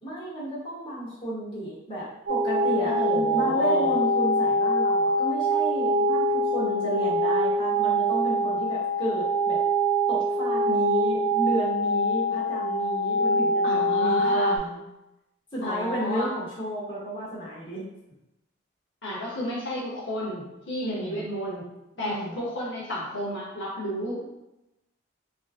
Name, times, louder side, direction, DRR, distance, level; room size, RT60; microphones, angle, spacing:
voice 1, 0.0-9.6 10.1-14.8 15.5-17.8 20.8-21.3 22.0-22.4, equal, 25° left, -7 dB, 1.1 m, -32 dB
sound 1, 2.3-14.6, right 1 dB, 60° right, 0.4 m, -24 dB
voice 2, 2.8-4.0 13.6-14.6 15.6-16.3 19.0-21.7 22.0-24.2, equal, 65° left, -6 dB, 0.8 m, -32 dB
3.6 x 2.6 x 2.4 m, 0.93 s
head